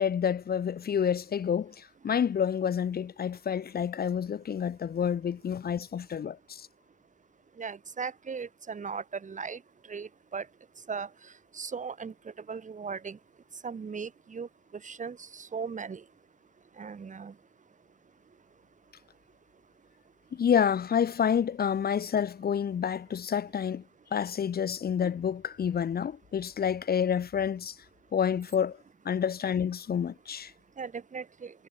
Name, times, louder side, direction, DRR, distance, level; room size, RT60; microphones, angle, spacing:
voice 1, 0.0-6.7 20.3-23.8 24.1-27.8 28.1-28.8 29.1-30.5, left 8 dB, 50° left, 2.1 m, -28 dB
voice 2, 7.6-9.6 9.9-10.5 10.9-11.1 11.5-12.1 12.5-13.2 13.6-14.5 14.8-16.0 16.8-17.3 30.8-31.5, right 5 dB, 40° right, 7.0 m, -37 dB
cardioid pair, 90°, 20 cm